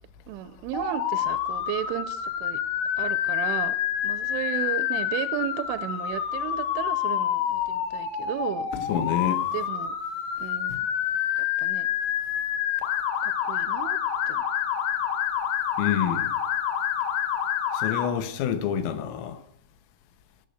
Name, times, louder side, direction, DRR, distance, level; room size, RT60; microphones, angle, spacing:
voice 1, 0.3-2.6 3.0-3.8 4.0-8.7 9.5-10.0 10.4-10.8 11.4-11.9 13.2-14.0 14.3-14.5, right 13 dB, 80° right, 3.0 m, -34 dB
Motor vehicle (road) / Siren, 0.7-18.1, left 10 dB, 65° left, 2.1 m, -28 dB
voice 2, 8.7-9.4 15.8-16.3 17.7-19.4, left 9 dB, 90° left, 3.7 m, -28 dB
19.0 x 6.7 x 7.9 m
omnidirectional pair, 5.6 m